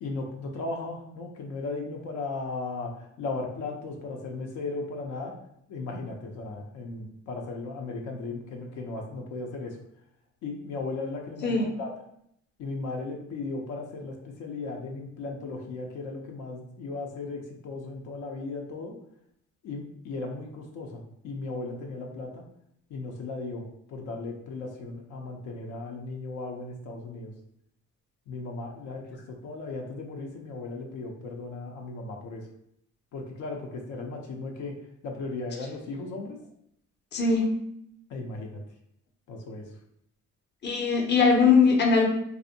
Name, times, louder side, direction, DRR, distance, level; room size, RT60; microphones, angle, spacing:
voice 1, 0.0-5.3 5.7-9.8 10.4-11.9 12.6-18.9 19.6-22.4 22.9-27.3 28.3-32.5 33.1-34.8 35.0-36.4 38.1-38.6 39.3-39.7, left 3 dB, 80° left, 1 dB, 0.5 m, -36 dB
voice 2, 37.1-37.5 40.6-42.0, left 4 dB, 35° left, 1 dB, 0.6 m, -21 dB
2.5 x 2.0 x 2.6 m, 0.74 s
cardioid pair, 90°, 30 cm